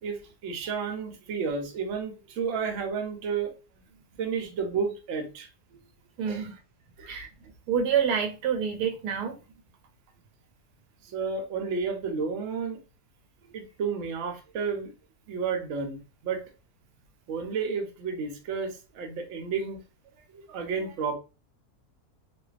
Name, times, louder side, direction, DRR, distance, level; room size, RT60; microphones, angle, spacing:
voice 1, 0.0-3.5 4.2-5.5 6.3-6.5 7.0-7.1 11.1-12.8 13.5-14.9 15.3-16.4 17.3-19.8 20.3-21.1, right 5 dB, 65° right, 0.8 m, -31 dB
voice 2, 6.2-6.5 7.1-7.3 7.7-9.4, right 7 dB, 85° right, 1.1 m, -27 dB
2.5 x 2.2 x 2.4 m
omnidirectional pair, 1.7 m